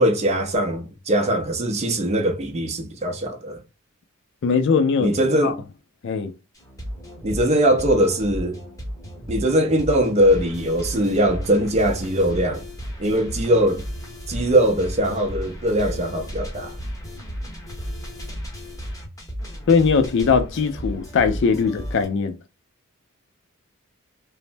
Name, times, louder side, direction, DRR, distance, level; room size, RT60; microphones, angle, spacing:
voice 1, 0.0-3.6 5.0-5.6 7.2-8.6 9.3-12.6 13.0-13.8 14.3-16.8, right 1 dB, 30° right, 0.5 m, -21 dB
voice 2, 4.4-5.1 5.4-5.5 6.0-6.3 19.7-22.4, left 5 dB, 55° left, 0.4 m, -20 dB
sound 1, 6.6-22.1, equal, 15° left, 0.9 m, -34 dB
3.2 x 2.0 x 2.5 m
head